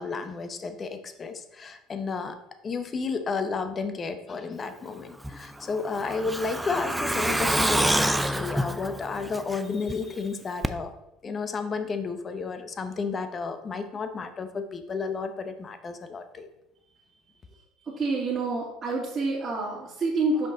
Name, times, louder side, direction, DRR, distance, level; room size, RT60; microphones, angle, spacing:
voice 1, 0.0-2.4 2.6-10.9 11.2-16.5, left 4 dB, 30° left, 9 dB, 0.7 m, -32 dB
Truck, 5.2-9.9 10.2-10.3 10.6-10.7, right 1 dB, 5° right, 0.4 m, -27 dB
voice 2, 17.8-20.5, right 3 dB, 30° right, -10 dB, 2.2 m, -28 dB
6.0 x 5.1 x 3.9 m, 0.85 s
supercardioid pair, 105°, 0 cm